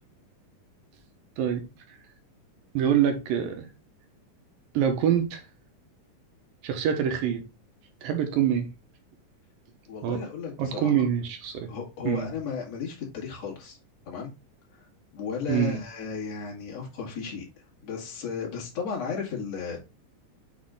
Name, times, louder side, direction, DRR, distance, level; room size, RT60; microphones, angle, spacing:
voice 1, 2.7-3.7 4.7-5.4 6.6-7.4 8.0-8.7 10.0-10.2 10.6-11.7 12.0-12.3 15.5-15.8, right 9 dB, 85° right, 3.0 m, -25 dB
voice 2, 9.9-11.1 11.7-13.8 14.1-14.3 14.7-14.9 15.1-17.5 17.8-19.8, left 6 dB, 50° left, 3.2 m, -34 dB
7.2 x 4.3 x 3.8 m
omnidirectional pair, 4.0 m